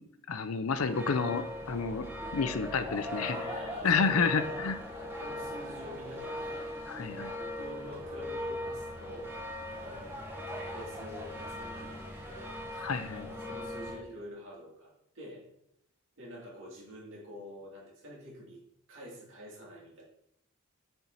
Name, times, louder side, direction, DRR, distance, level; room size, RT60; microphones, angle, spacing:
voice 1, 0.3-2.1 2.3-3.4 3.8-4.7 6.9-7.3 12.8-13.3, left 5 dB, 85° left, 11 dB, 0.6 m, -30 dB
sound 1, 0.7-14.0, left 1 dB, 10° right, 1.2 m, -39 dB
voice 2, 3.3-4.7 5.2-12.8 13.1-15.4 16.2-18.6 18.9-20.0, equal, 65° right, -5 dB, 2.9 m, -47 dB
8.2 x 4.5 x 4.1 m, 0.77 s
head